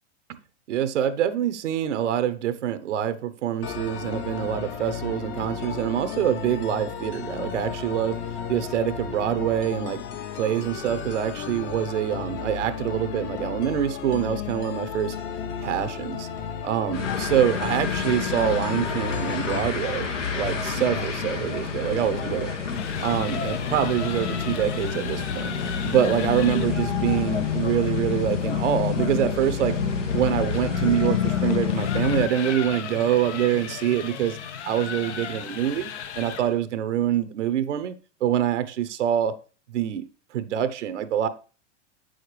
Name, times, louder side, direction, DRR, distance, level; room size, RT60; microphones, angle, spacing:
voice 1, 0.7-8.2 8.5-10.0 10.3-15.1 15.6-16.3 16.6-20.1 20.4-22.5 23.0-25.5 25.8-29.8 30.1-34.4 34.6-35.9 36.2-37.9 38.2-39.3 39.7-40.0 40.3-41.3, right 10 dB, 75° right, 0.9 m, -25 dB
sound 1, 3.6-19.6, left 7 dB, 30° left, 0.8 m, -34 dB
sound 2, 16.9-32.3, left 7 dB, 90° left, 1.9 m, -28 dB
sound 3, 22.7-26.8 29.4-36.6, left 8 dB, 70° left, 1.0 m, -36 dB
7.8 x 6.5 x 3.2 m
hypercardioid pair, 120°, 36 cm